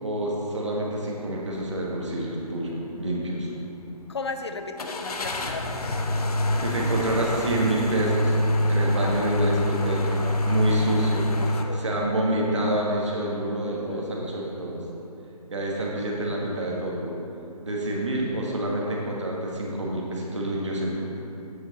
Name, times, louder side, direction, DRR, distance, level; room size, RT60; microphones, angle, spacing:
voice 1, 0.0-3.5 6.6-8.4 8.7-11.2 11.7-14.8 15.5-17.1 17.6-21.0, right 1 dB, 50° right, -3 dB, 1.3 m, -27 dB
sound 1, 1.5-1.7 2.2-2.3 4.8-11.6, left 1 dB, 70° left, 0.8 m, -26 dB
voice 2, 4.1-5.9 9.0-9.3 10.9-12.0 13.8-14.2, left 3 dB, 45° left, 7 dB, 0.4 m, -36 dB
8.1 x 5.5 x 4.0 m, 2.9 s
hypercardioid pair, 180°, 20 cm